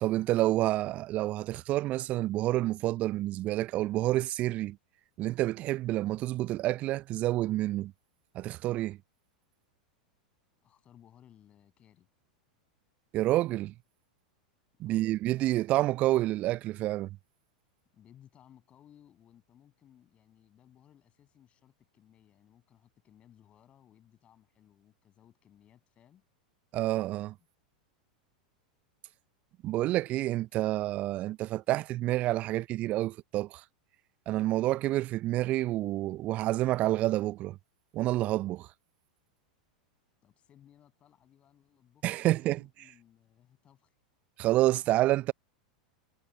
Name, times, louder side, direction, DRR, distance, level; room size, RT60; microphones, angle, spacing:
voice 1, 0.0-4.8 5.2-7.9 8.3-9.0 13.1-13.7 14.8-17.1 26.7-27.3 29.6-33.6 34.3-37.6 37.9-38.7 42.0-42.6 44.4-45.3, right 16 dB, 35° right, 0.6 m, -28 dB
voice 2, 10.6-12.1 14.8-15.1 17.9-26.2 40.2-43.9, left 10 dB, 30° left, 7.2 m, -61 dB
figure-of-eight pair, 90°, 4 cm